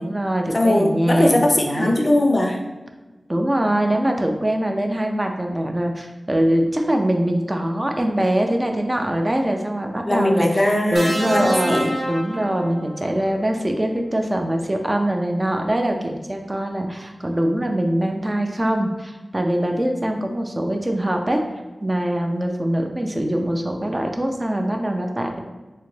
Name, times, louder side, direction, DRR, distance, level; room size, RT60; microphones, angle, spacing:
voice 1, 0.0-2.0 3.3-10.5 10.9-21.4 21.8-25.4, right 1 dB, 25° right, 3 dB, 0.4 m, -23 dB
voice 2, 0.5-2.6 10.1-11.9, left 1 dB, 40° left, 2 dB, 0.4 m, -20 dB
sound 1, 10.9-13.2 14.5-14.7, right 1 dB, 80° right, 0.5 m, -27 dB
3.7 x 2.1 x 3.1 m, 1.2 s
wide cardioid pair, 75°, 0 cm